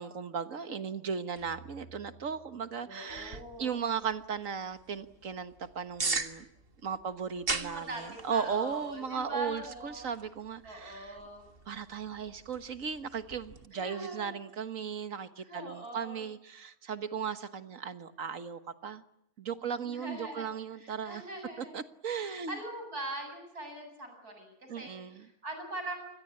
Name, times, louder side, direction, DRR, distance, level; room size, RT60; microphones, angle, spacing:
voice 1, 0.0-6.5 6.8-11.2 11.7-19.0 19.4-21.2 21.6-22.6 24.7-25.3, right 7 dB, 60° right, 11 dB, 1.7 m, -36 dB
sound 1, 1.4-3.6, right 5 dB, 75° left, 6.2 m, -55 dB
voice 2, 2.8-3.8 7.5-10.1 10.6-11.5 13.7-14.4 15.5-16.2 19.6-20.5 20.7-21.8 22.1-26.1, right 2 dB, 85° right, 5 dB, 8.5 m, -42 dB
sound 2, 3.1-13.7, right 4 dB, 40° right, 1.8 m, -41 dB
28.0 x 21.5 x 8.6 m, 0.82 s
omnidirectional pair, 1.6 m